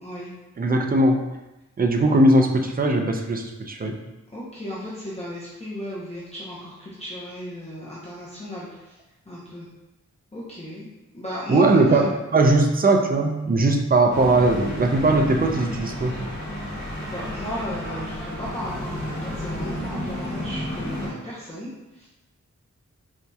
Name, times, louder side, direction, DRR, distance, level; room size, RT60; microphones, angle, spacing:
voice 1, 0.6-1.3 1.8-3.9 11.5-16.2, right 2 dB, 30° right, 3 dB, 0.4 m, -19 dB
voice 2, 4.3-8.9 9.3-9.7 10.3-10.9 11.1-12.0 17.1-22.1, equal, 20° left, -8 dB, 0.7 m, -35 dB
sound 1, 14.1-21.1, left 1 dB, 60° left, 1.1 m, -32 dB
4.3 x 2.7 x 2.2 m, 1.0 s
wide cardioid pair, 110°, 30 cm